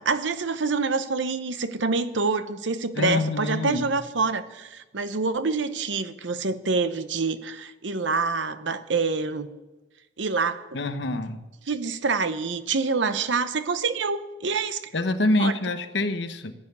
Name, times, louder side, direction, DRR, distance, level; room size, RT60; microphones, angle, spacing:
voice 1, 0.0-9.5 10.2-10.7 11.7-14.8 15.4-15.5, right 4 dB, 85° right, 11 dB, 0.9 m, -26 dB
voice 2, 2.9-3.9 10.7-11.4 14.9-16.5, left 2 dB, 75° left, 9 dB, 1.0 m, -26 dB
14.5 x 9.6 x 6.8 m, 1.1 s
head